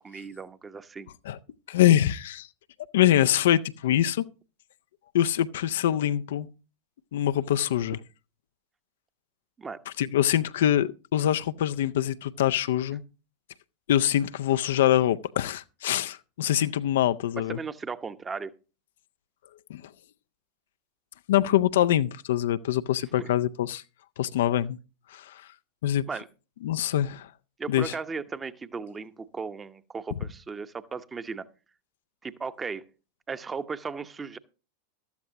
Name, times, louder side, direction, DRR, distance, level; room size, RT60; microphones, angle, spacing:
voice 1, 0.0-1.1 9.6-9.8 17.5-18.6 23.2-23.4 26.1-26.3 27.6-31.5 32.2-32.9 33.3-34.4, right 5 dB, 15° right, 0.9 m, -36 dB
voice 2, 1.7-2.5 2.9-4.3 5.1-6.5 7.1-8.0 9.9-13.0 13.9-17.6 19.7-19.8 21.3-23.8 24.2-24.8 25.1-25.5 25.8-26.0 26.6-27.3 27.7-27.9, left 12 dB, 60° left, 0.5 m, -24 dB
14.0 x 13.0 x 2.9 m
figure-of-eight pair, 90°, 0 cm